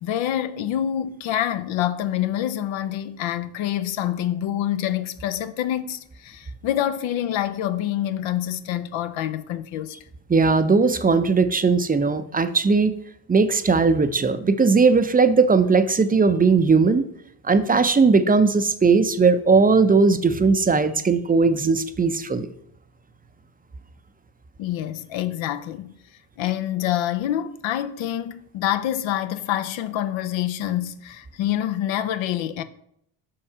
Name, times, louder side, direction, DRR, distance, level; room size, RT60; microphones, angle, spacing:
voice 1, 0.0-9.9 24.6-25.9 26.4-32.6, left 11 dB, 70° left, 0.6 m, -26 dB
voice 2, 10.3-13.0 13.3-17.0 17.5-22.5, right 4 dB, 20° right, 0.5 m, -18 dB
5.4 x 4.5 x 4.9 m
hypercardioid pair, 50°, 49 cm